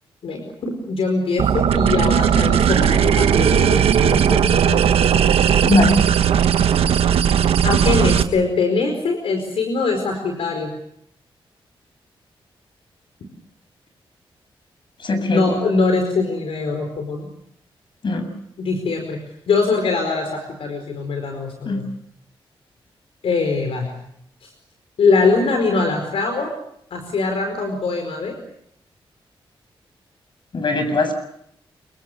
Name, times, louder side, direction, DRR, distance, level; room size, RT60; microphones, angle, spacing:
voice 1, 0.2-4.8 7.6-10.7 15.3-17.3 18.6-19.2 19.5-21.9 23.2-23.9 24.4-24.5 25.0-26.5 26.9-28.4, left 4 dB, 80° left, 5 dB, 4.8 m, -22 dB
sound 1, 1.4-8.2, right 8 dB, 90° right, 1.2 m, -17 dB
voice 2, 15.0-15.5 18.0-18.3 21.7-21.8 30.5-31.1, left 2 dB, 55° left, 7 dB, 7.4 m, -19 dB
27.5 x 24.5 x 6.9 m, 0.73 s
cardioid pair, 85°, 10 cm